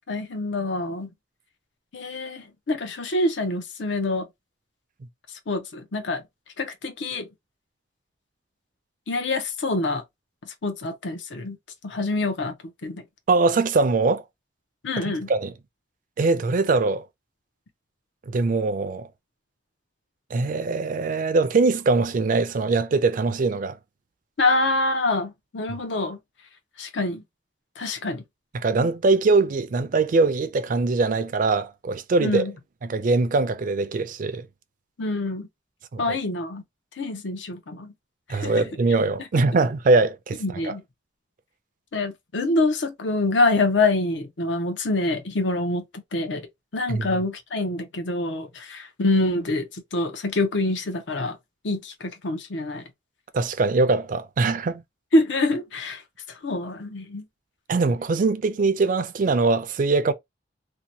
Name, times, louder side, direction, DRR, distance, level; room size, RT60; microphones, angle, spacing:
voice 1, 0.1-1.1 1.9-4.3 5.5-6.2 6.6-7.3 9.1-10.0 10.4-11.6 11.8-12.5 12.8-13.0 14.8-15.3 24.4-26.2 26.8-27.2 27.8-28.2 32.2-32.5 35.0-35.5 36.0-36.6 37.0-37.9 38.3-38.7 40.4-40.8 41.9-46.5 46.7-51.4 51.6-52.8 55.1-56.0 56.3-57.2, left 2 dB, 75° left, 0.7 m, -26 dB
voice 2, 13.3-14.2 15.0-15.5 16.2-17.0 18.3-19.1 20.3-23.8 25.7-25.8 28.5-32.4 32.8-34.5 35.9-36.2 38.3-40.7 46.9-47.1 53.3-54.8 57.7-60.1, right 3 dB, 45° right, 0.4 m, -22 dB
2.7 x 2.2 x 2.6 m
head